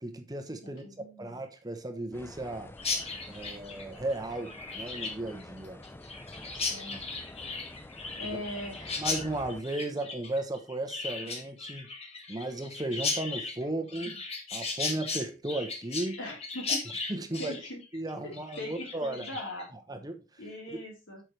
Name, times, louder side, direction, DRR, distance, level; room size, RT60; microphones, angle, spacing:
voice 1, 0.0-2.7 3.3-5.8 8.2-8.3 9.0-11.9 12.3-14.2 14.5-16.2 17.1-17.6 17.9-19.3 19.9-20.2 20.7-20.8, right 1 dB, 20° right, 1.0 m, -35 dB
voice 2, 0.6-1.4 6.5-7.0 8.2-9.0 16.2-16.8 17.4-17.8 18.6-19.7 20.4-21.2, left 1 dB, 80° left, 3.9 m, -40 dB
sound 1, 2.1-9.6, left 1 dB, 10° left, 0.5 m, -48 dB
Chirp tweet, 2.8-19.6, left 4 dB, 35° left, 1.6 m, -36 dB
8.9 x 6.1 x 3.3 m
head